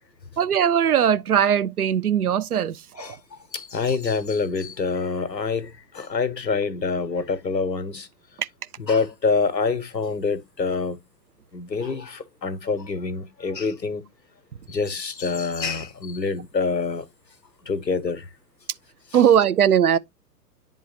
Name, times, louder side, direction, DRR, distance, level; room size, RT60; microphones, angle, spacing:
voice 1, 0.4-3.2 8.4-8.5 19.1-20.0, right 9 dB, 65° right, 0.6 m, -20 dB
voice 2, 3.5-8.1 8.8-11.0 11.5-14.0 14.7-17.0 17.7-18.2, left 4 dB, 85° left, 0.9 m, -26 dB
10.5 x 3.7 x 2.7 m
figure-of-eight pair, 120°, 49 cm